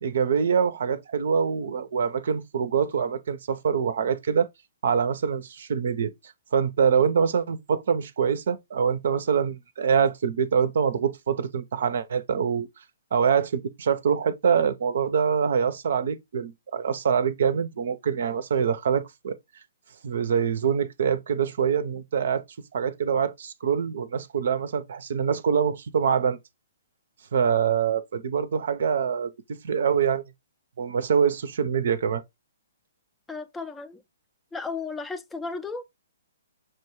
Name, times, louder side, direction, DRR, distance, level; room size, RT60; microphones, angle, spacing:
voice 1, 0.0-4.5 4.8-6.1 6.5-12.7 13.1-19.4 20.0-22.4 22.7-26.4 27.3-29.3 29.6-30.2 30.8-32.2, right 7 dB, 60° right, 0.5 m, -24 dB
voice 2, 33.3-34.0 34.5-35.8, left 4 dB, 10° left, 0.4 m, -34 dB
6.2 x 2.2 x 3.0 m
figure-of-eight pair, 125°, 0 cm